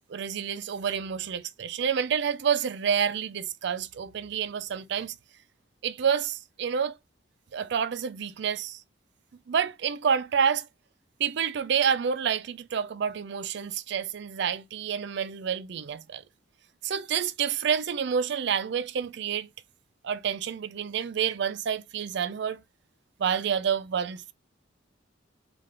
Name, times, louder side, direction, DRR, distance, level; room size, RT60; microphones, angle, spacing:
voice 1, 0.1-5.2 5.8-7.0 7.5-8.8 9.5-10.7 11.2-16.2 16.8-19.5 20.0-22.6 23.2-24.3, right 7 dB, 65° right, 0.4 m, -28 dB
3.7 x 2.5 x 3.2 m
head